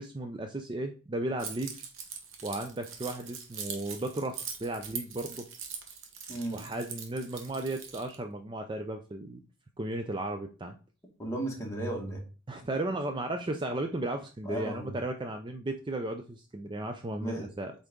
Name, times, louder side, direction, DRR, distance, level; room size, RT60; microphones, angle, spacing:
voice 1, 0.0-1.8 2.4-5.4 6.5-9.4 9.8-10.8 12.5-17.7, right 2 dB, 25° right, 6 dB, 0.5 m, -35 dB
Keys jangling, 1.4-8.2, right 6 dB, 75° right, 1.3 m, -42 dB
voice 2, 6.3-6.7 11.2-12.3 14.4-14.9 17.2-17.5, right 1 dB, 15° left, -2 dB, 1.8 m, -35 dB
8.1 x 4.0 x 3.7 m, 0.34 s
head